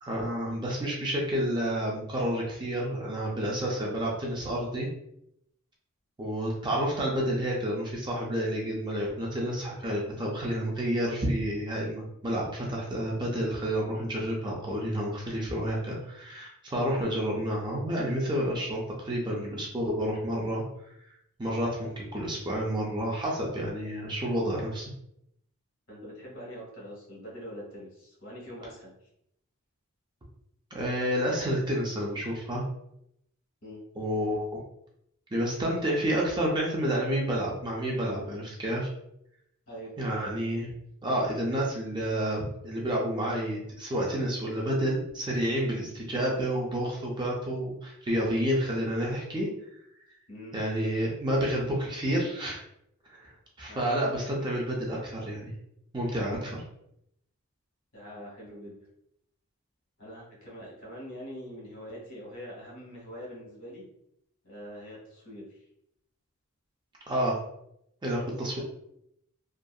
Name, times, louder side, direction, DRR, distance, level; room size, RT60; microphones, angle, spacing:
voice 1, 0.0-4.9 6.2-20.6 21.4-24.8 30.7-32.6 34.0-34.6 35.3-38.9 40.0-40.7 41.0-49.5 50.5-52.6 53.2-53.3 53.6-55.5 55.9-56.6 67.1-67.4 68.0-68.6, equal, 20° right, -3 dB, 0.4 m, -29 dB
voice 2, 25.9-29.1 33.6-33.8 39.7-39.9 50.3-50.5 53.7-53.9 57.9-58.8 60.0-63.9 64.4-65.7 68.4-68.6, equal, 60° left, -4 dB, 1.2 m, -44 dB
2.7 x 2.4 x 2.3 m, 0.77 s
head